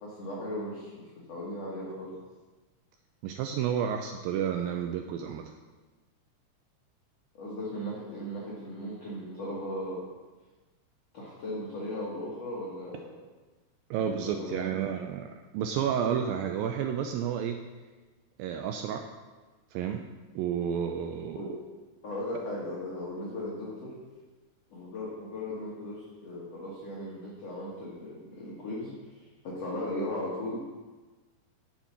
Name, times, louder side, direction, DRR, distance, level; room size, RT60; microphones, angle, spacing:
voice 1, 0.0-2.2 7.3-10.0 11.1-13.2 14.2-14.8 21.3-21.5 22.0-24.0 24.7-30.6, left 1 dB, 55° left, -5 dB, 2.1 m, -37 dB
voice 2, 3.2-5.5 13.9-17.6 18.4-19.1 19.7-20.1 20.4-21.4, right 8 dB, 90° right, 5 dB, 2.0 m, -31 dB
9.4 x 6.0 x 5.6 m, 1.3 s
omnidirectional pair, 4.6 m